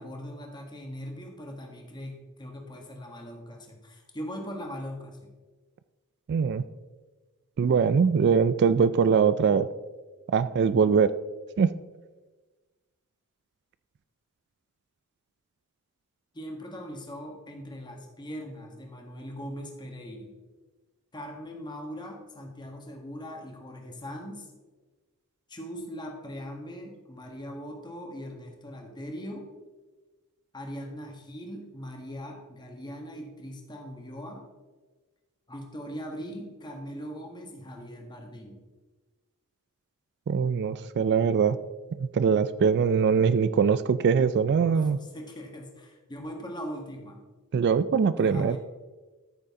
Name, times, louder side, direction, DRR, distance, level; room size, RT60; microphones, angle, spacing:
voice 1, 0.0-5.3 16.3-20.3 21.1-24.5 25.5-29.5 30.5-34.5 35.5-38.6 44.5-47.2 48.1-48.6, equal, 20° left, 2 dB, 1.6 m, -40 dB
voice 2, 6.3-6.6 7.6-9.7 10.3-11.1 11.6-11.7 40.3-41.6 42.0-45.0 47.5-48.6, right 6 dB, 50° right, 14 dB, 0.3 m, -22 dB
13.5 x 6.6 x 3.7 m, 1.3 s
head